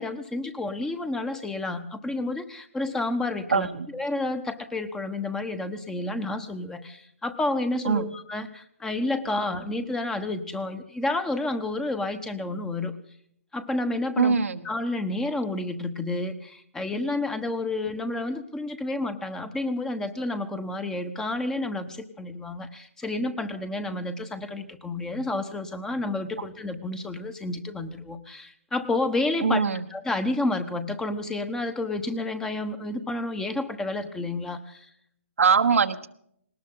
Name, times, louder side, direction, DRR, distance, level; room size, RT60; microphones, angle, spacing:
voice 1, 0.0-12.9 13.5-14.3 14.6-29.6 29.9-34.9, left 2 dB, 5° left, 10 dB, 1.1 m, -30 dB
voice 2, 3.5-3.9 7.8-8.1 14.2-14.7 29.4-29.8 35.4-36.1, right 6 dB, 80° right, 7 dB, 1.3 m, -22 dB
19.5 x 19.0 x 3.8 m, 0.69 s
hypercardioid pair, 145°, 7 cm